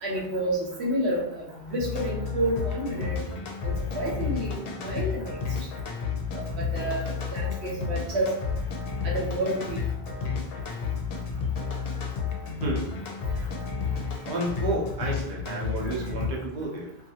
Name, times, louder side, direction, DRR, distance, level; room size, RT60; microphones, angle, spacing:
voice 1, 0.0-3.1 3.6-5.2 6.3-8.3 9.0-9.8, right 1 dB, 80° right, -3 dB, 1.1 m, -30 dB
sound 1, 1.8-16.3, left 5 dB, 65° left, 0.7 m, -31 dB
voice 2, 12.6-13.0 14.3-17.0, right 2 dB, 50° right, -2 dB, 0.7 m, -31 dB
2.5 x 2.3 x 2.7 m, 0.79 s
omnidirectional pair, 1.1 m